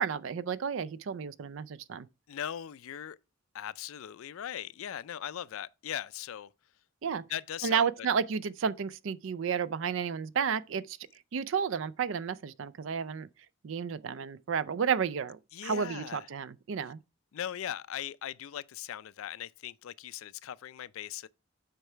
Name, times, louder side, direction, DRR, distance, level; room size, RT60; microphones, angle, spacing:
voice 1, 0.0-2.1 7.0-7.2 7.6-11.0 11.3-13.3 13.6-17.0, right 6 dB, 65° right, 0.4 m, -32 dB
voice 2, 2.3-3.2 3.5-6.5 7.3-8.1 15.5-16.3 17.3-21.3, left 10 dB, 75° left, 0.4 m, -39 dB
8.1 x 4.7 x 4.4 m
head